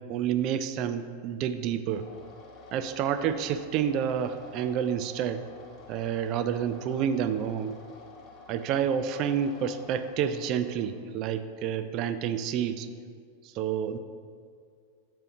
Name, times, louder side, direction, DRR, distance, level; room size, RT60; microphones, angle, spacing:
voice 1, 0.1-2.1 2.7-5.4 5.9-7.7 8.5-12.9 13.5-14.0, right 8 dB, 40° right, 11 dB, 0.4 m, -29 dB
sound 1, 1.9-10.9, left 3 dB, 25° left, 1.7 m, -50 dB
12.0 x 7.4 x 2.8 m, 2.2 s
figure-of-eight pair, 90°, 0 cm